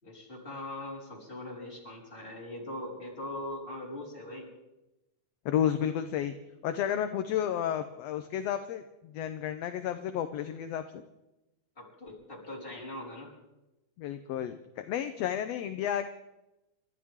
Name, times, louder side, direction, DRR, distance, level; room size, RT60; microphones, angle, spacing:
voice 1, 0.0-4.5 11.8-13.3, left 1 dB, 15° left, -4 dB, 5.0 m, -41 dB
voice 2, 5.4-6.3 6.6-11.0 14.0-16.1, left 10 dB, 70° left, 8 dB, 1.6 m, -32 dB
30.0 x 13.0 x 3.7 m, 0.98 s
omnidirectional pair, 3.6 m